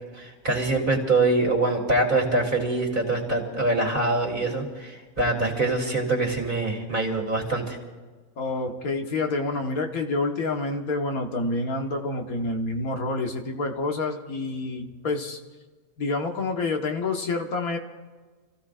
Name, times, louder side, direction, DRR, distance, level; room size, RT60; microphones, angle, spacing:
voice 1, 0.1-7.8, right 2 dB, 35° right, -1 dB, 3.3 m, -24 dB
voice 2, 8.4-15.4 16.0-17.8, left 3 dB, 85° left, 3 dB, 1.9 m, -28 dB
30.0 x 16.0 x 2.5 m, 1.4 s
omnidirectional pair, 1.5 m